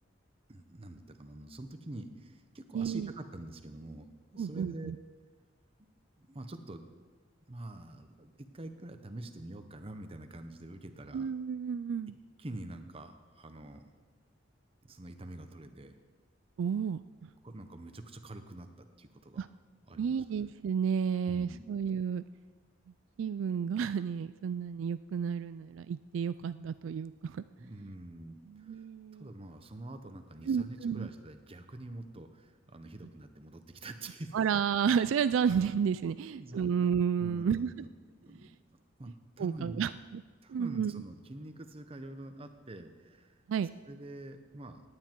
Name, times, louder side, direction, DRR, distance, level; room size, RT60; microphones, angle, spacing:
voice 1, 0.5-4.1 4.3-4.9 6.2-6.8 7.5-11.3 12.4-13.9 14.8-15.9 17.4-19.4 19.9-20.2 21.3-21.8 27.6-28.8 29.2-34.4 36.1-36.7 37.2-37.9 38.2-38.5 39.0-39.9 40.4-43.3 43.9-44.8, right 1 dB, 30° right, 7 dB, 0.9 m, -46 dB
voice 2, 2.7-3.1 4.4-5.0 11.1-12.1 16.6-17.3 19.4-19.5 20.0-22.2 23.2-27.4 28.5-29.3 30.5-31.1 34.3-37.7 39.4-40.2 40.5-41.0 43.5-43.7, right 7 dB, 80° right, 14 dB, 0.3 m, -31 dB
17.0 x 9.7 x 4.6 m, 1.4 s
head